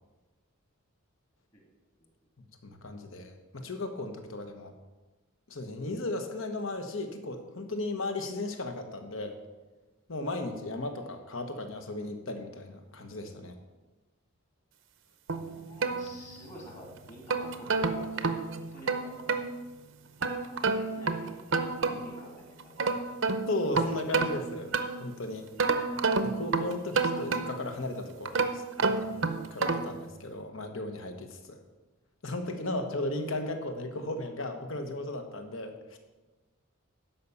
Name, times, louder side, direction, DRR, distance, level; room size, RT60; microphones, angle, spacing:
voice 1, 2.4-4.7 5.5-9.4 10.1-13.6 23.5-24.7 25.0-25.5 26.2-31.6 32.2-36.0, left 2 dB, 65° left, 6 dB, 1.2 m, -36 dB
sound 1, 15.3-16.6 17.1-19.5 20.2-22.2 22.6-25.1 25.6-27.8 28.3-30.0, right 4 dB, 60° right, 0.7 m, -30 dB
voice 2, 15.5-18.1 18.5-19.1 20.4-21.4 21.8-23.2, equal, 30° left, -1 dB, 2.2 m, -49 dB
11.5 x 5.4 x 7.1 m, 1.2 s
head